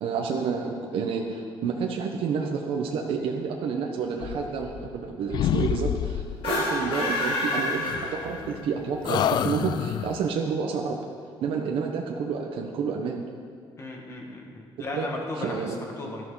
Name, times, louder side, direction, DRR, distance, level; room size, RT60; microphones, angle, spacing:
voice 1, 0.0-11.1 11.4-13.2 14.9-15.1 15.3-15.8, right 5 dB, 70° right, 1 dB, 1.2 m, -29 dB
sound 1, 4.2-5.1 5.3-6.5 7.8-8.7 9.0-10.3, left 10 dB, 50° left, 0.4 m, -28 dB
sound 2, 6.3-8.7, left 1 dB, 70° left, 3.0 m, -28 dB
voice 2, 13.8-16.2, left 2 dB, 30° left, 0 dB, 2.0 m, -36 dB
17.0 x 12.5 x 4.1 m, 2.3 s
cardioid pair, 170°, 9 cm